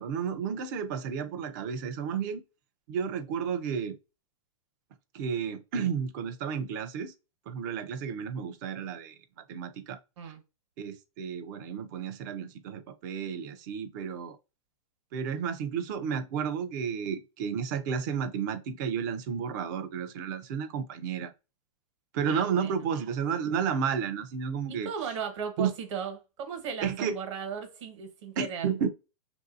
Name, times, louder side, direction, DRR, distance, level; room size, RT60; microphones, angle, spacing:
voice 1, 0.0-2.4 2.9-4.0 5.1-7.1 7.5-9.2 9.5-10.0 10.3-10.4 10.8-14.4 15.1-21.3 22.1-24.9 25.6-25.7 26.8-27.2 28.4-28.9, right 7 dB, 30° right, 0.4 m, -32 dB
voice 2, 22.3-22.9 24.7-28.7, right 7 dB, 50° right, 1.2 m, -36 dB
3.2 x 2.6 x 2.5 m
supercardioid pair, 165°, 19 cm